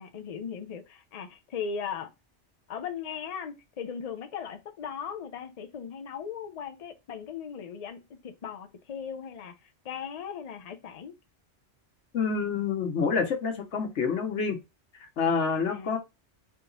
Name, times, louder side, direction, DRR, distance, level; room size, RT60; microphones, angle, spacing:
voice 1, 0.0-2.1 2.7-11.1 15.7-16.0, left 7 dB, 45° left, 0.6 m, -38 dB
voice 2, 12.1-14.6 15.2-16.0, left 5 dB, 90° left, 1.3 m, -27 dB
3.5 x 2.9 x 3.9 m
omnidirectional pair, 1.2 m